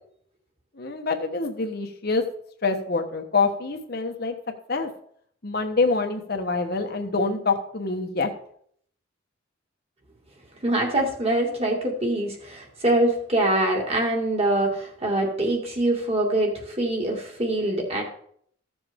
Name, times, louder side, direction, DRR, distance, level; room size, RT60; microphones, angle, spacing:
voice 1, 0.8-2.2 2.6-4.3 4.7-4.9 5.4-8.3, left 3 dB, 50° left, 5 dB, 1.1 m, -25 dB
voice 2, 10.6-18.0, right 1 dB, 30° right, 0 dB, 2.2 m, -24 dB
14.5 x 7.1 x 3.7 m, 0.64 s
head